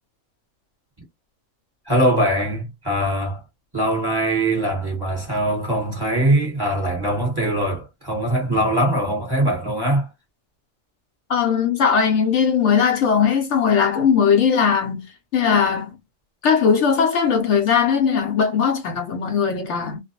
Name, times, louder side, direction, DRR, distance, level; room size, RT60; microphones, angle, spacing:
voice 1, 1.8-3.4 3.7-10.1, right 1 dB, 20° right, 1.2 m, -22 dB
voice 2, 11.3-15.1 15.3-16.0 16.4-20.0, left 6 dB, 70° left, 0.8 m, -19 dB
2.4 x 2.1 x 2.7 m
omnidirectional pair, 1.4 m